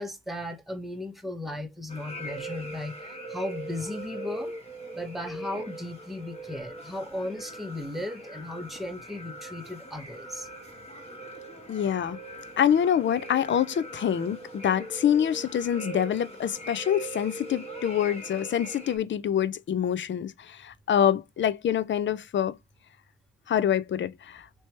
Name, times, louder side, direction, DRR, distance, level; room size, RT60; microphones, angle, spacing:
voice 1, 0.0-4.5 4.9-10.5, left 1 dB, ahead, 0.9 m, -36 dB
sound 1, 1.9-19.0, right 1 dB, 20° left, 1.2 m, -41 dB
voice 2, 11.7-12.2 12.6-22.6 23.5-24.5, left 9 dB, 40° left, 0.5 m, -26 dB
3.3 x 3.0 x 4.4 m
cardioid pair, 90°, 30 cm